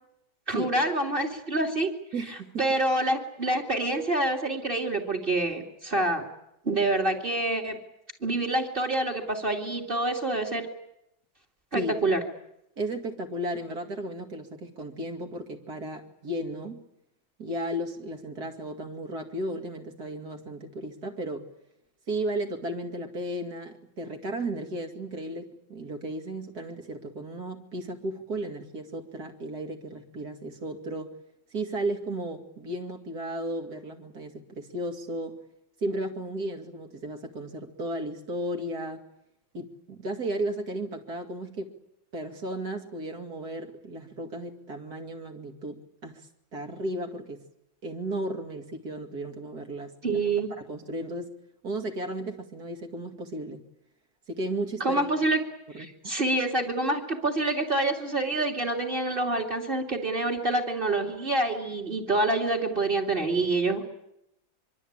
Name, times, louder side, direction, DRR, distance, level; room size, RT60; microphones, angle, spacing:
voice 1, 0.5-1.9 2.6-6.2 6.6-7.8 8.2-10.7 11.7-12.2 50.0-50.5 54.8-55.4 55.8-63.8, right 2 dB, 25° right, 2 dB, 2.8 m, -27 dB
voice 2, 2.1-2.7 11.7-12.0 12.8-16.8 17.4-21.5 22.1-31.1 31.5-35.4 35.8-39.0 39.5-41.7 42.1-47.4 47.8-50.2 50.6-51.3 51.6-53.7 54.3-55.1 55.7-56.2, right 1 dB, 50° right, 4 dB, 2.7 m, -34 dB
24.5 x 24.0 x 8.8 m, 0.83 s
omnidirectional pair, 2.2 m